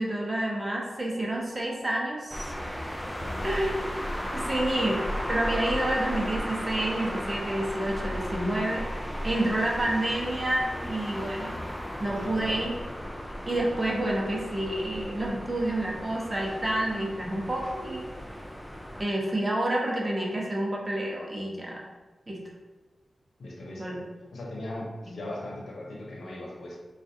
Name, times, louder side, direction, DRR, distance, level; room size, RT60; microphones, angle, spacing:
voice 1, 0.0-2.5 3.4-3.7 4.3-8.8 9.2-11.6 12.0-12.7 13.5-18.1 19.0-21.8 22.3-22.4 23.8-23.9, right 1 dB, 25° right, -2 dB, 0.8 m, -29 dB
sound 1, 2.3-19.0, equal, 5° left, 0.4 m, -35 dB
voice 2, 12.2-12.6 23.4-24.0 24.3-26.8, left 1 dB, 80° left, -3 dB, 0.9 m, -39 dB
4.5 x 2.4 x 2.7 m, 1.2 s
cardioid pair, 60°, 0 cm